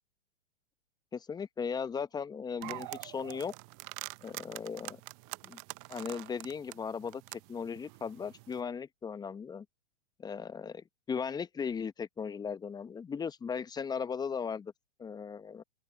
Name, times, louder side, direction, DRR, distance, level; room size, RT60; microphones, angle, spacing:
voice 1, 1.1-3.5 4.2-5.0 5.4-5.6 5.9-9.6 10.2-14.7 15.0-15.6, left 6 dB, 10° left, 0.9 m, -37 dB
sound 1, 2.6-8.6, right 28 dB, 35° right, 0.6 m, -45 dB
open air
hypercardioid pair, 120°, 34 cm